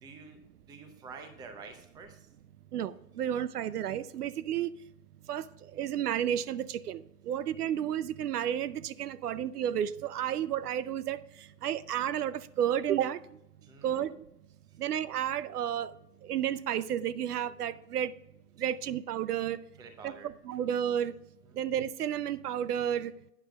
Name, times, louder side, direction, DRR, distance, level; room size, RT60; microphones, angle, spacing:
voice 1, 0.0-0.4 0.7-2.3 13.6-14.0 14.7-14.8 19.8-20.3, right 4 dB, 10° right, 6 dB, 0.6 m, -48 dB
voice 2, 2.7-4.7 5.3-13.2 13.8-14.2 14.8-15.9 16.2-18.1 18.6-19.6 20.0-21.1 21.6-23.1, right 10 dB, 65° right, 17 dB, 0.6 m, -32 dB
11.5 x 9.0 x 2.3 m, 0.84 s
hypercardioid pair, 125°, 49 cm